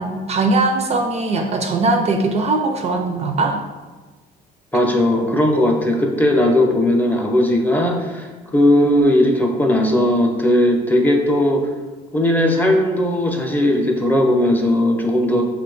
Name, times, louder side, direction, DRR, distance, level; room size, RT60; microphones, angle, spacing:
voice 1, 0.0-3.6, right 3 dB, 40° right, 4 dB, 0.4 m, -20 dB
voice 2, 4.7-11.7 12.1-15.4, left 1 dB, 10° left, 1 dB, 0.5 m, -17 dB
4.6 x 2.2 x 3.8 m, 1.3 s
cardioid pair, 110°, 17 cm